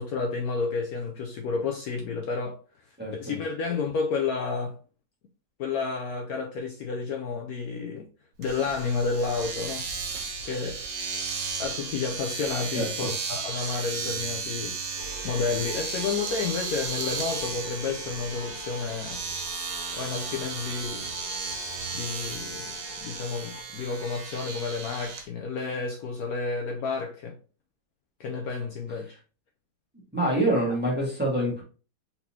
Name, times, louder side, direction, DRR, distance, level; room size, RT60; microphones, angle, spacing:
voice 1, 0.0-2.6 3.1-4.8 5.6-8.1 8.4-9.9 10.4-10.8 11.6-19.2 19.9-21.1 21.9-22.7 23.0-27.4 28.2-29.2, left 4 dB, 70° left, 1.0 m, -31 dB
voice 2, 3.0-3.3 12.7-12.9 30.1-31.6, right 1 dB, 5° right, 1.5 m, -26 dB
Domestic sounds home sounds, 8.4-25.2, right 5 dB, 85° right, 1.5 m, -34 dB
sound 1, 15.0-23.6, left 4 dB, 90° left, 1.4 m, -44 dB
4.2 x 4.2 x 2.8 m
omnidirectional pair, 1.9 m